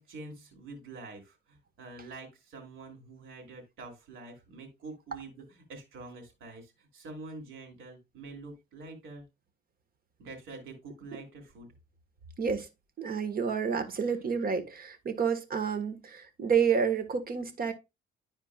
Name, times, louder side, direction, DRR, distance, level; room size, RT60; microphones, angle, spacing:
voice 1, 0.0-9.2 10.2-11.7 13.7-14.2, right 3 dB, 85° right, 3.1 m, -46 dB
voice 2, 12.4-12.7 13.0-17.7, right 6 dB, 50° right, 1.4 m, -29 dB
11.5 x 4.4 x 2.3 m
cardioid pair, 90°, 20 cm